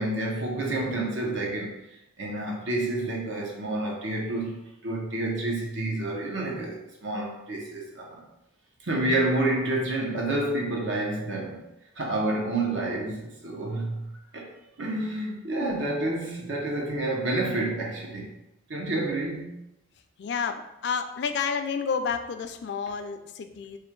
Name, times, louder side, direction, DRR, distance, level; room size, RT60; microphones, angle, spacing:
voice 1, 0.0-1.9 2.2-8.2 8.8-11.6 12.0-14.5 14.8-18.3 18.7-19.6, right 2 dB, 80° right, -1 dB, 1.0 m, -29 dB
voice 2, 20.2-23.8, left 6 dB, 60° left, 8 dB, 0.3 m, -30 dB
3.2 x 2.4 x 4.4 m, 0.89 s
head